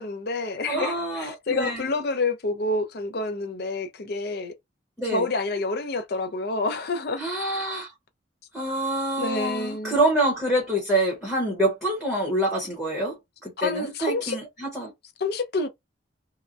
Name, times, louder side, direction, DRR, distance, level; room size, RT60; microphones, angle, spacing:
voice 1, 0.0-4.5 5.0-7.2 9.2-10.0 13.6-14.4 15.2-15.7, left 3 dB, 55° left, 0.6 m, -28 dB
voice 2, 0.7-1.9 5.0-5.2 7.2-7.9 8.5-13.2 13.4-14.9, right 1 dB, ahead, 0.9 m, -26 dB
2.8 x 2.1 x 2.5 m
head